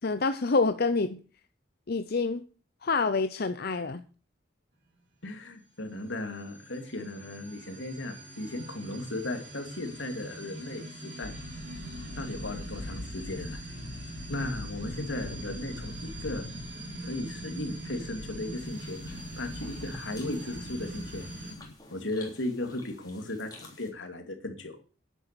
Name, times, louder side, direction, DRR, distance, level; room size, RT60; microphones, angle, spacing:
voice 1, 0.0-1.2 1.9-2.4 2.8-4.0, left 4 dB, 55° left, 9 dB, 0.7 m, -27 dB
voice 2, 5.2-11.3 12.2-13.6 14.3-16.5 17.0-21.3 21.9-24.8, left 2 dB, 90° left, 5 dB, 2.8 m, -36 dB
sound 1, 5.9-21.5, right 2 dB, 60° right, 4.5 m, -43 dB
sound 2, 11.2-21.7, left 2 dB, 75° left, 1.2 m, -43 dB
sound 3, 18.6-23.9, left 3 dB, 20° left, 3.4 m, -52 dB
10.0 x 10.0 x 6.8 m, 0.38 s
head